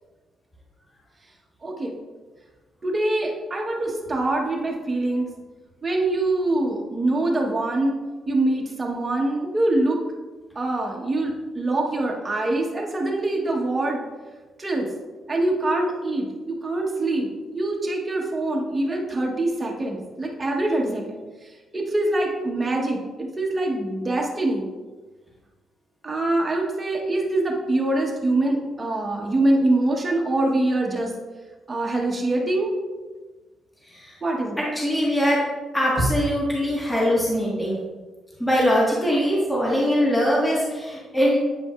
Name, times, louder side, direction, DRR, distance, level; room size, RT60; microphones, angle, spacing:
voice 1, 1.6-1.9 2.8-5.3 5.8-8.0 8.3-10.0 10.5-14.0 14.6-14.9 15.3-21.2 21.7-24.7 26.0-31.1 31.7-32.7 34.2-34.6, right 2 dB, 25° right, -1 dB, 1.2 m, -24 dB
voice 2, 34.7-35.4 35.7-37.8 38.4-41.4, equal, 10° left, -6 dB, 1.5 m, -21 dB
8.3 x 5.0 x 2.4 m, 1.3 s
cardioid pair, 105°, 0 cm